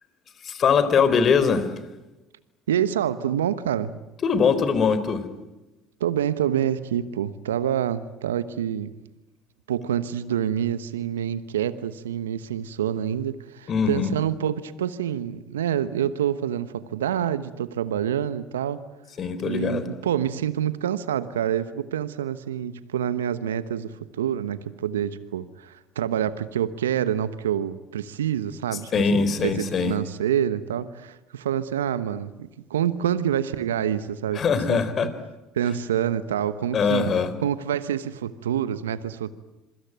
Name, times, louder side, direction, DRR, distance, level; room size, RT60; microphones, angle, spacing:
voice 1, 0.4-1.7 4.2-5.3 13.7-14.1 19.2-19.8 28.9-29.9 34.3-35.1 36.7-37.3, left 5 dB, 45° left, 4.0 m, -22 dB
voice 2, 2.7-4.0 6.0-8.9 9.7-18.8 19.5-34.8 35.5-39.3, right 10 dB, 85° right, 1.0 m, -27 dB
26.5 x 24.0 x 9.3 m
hypercardioid pair, 65°, 0 cm